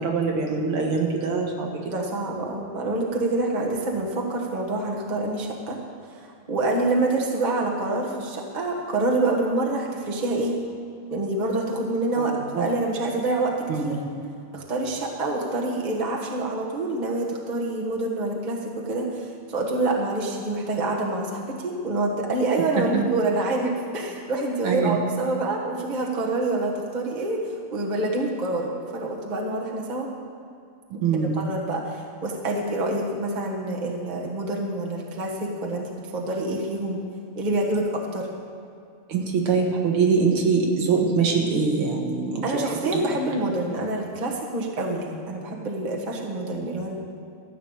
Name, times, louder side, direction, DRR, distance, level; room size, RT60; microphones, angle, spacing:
voice 1, 0.0-1.7 12.2-12.7 13.7-14.0 22.8-23.0 24.6-25.0 31.0-31.4 39.1-42.4 42.9-43.0, right 5 dB, 80° right, 1 dB, 2.3 m, -23 dB
voice 2, 1.8-5.8 6.2-10.6 11.1-13.9 14.5-27.4 27.7-30.1 31.4-37.0 37.3-38.3 42.4-47.0, right 2 dB, 25° right, -1 dB, 1.3 m, -27 dB
13.5 x 6.0 x 8.8 m, 2.4 s
omnidirectional pair, 2.4 m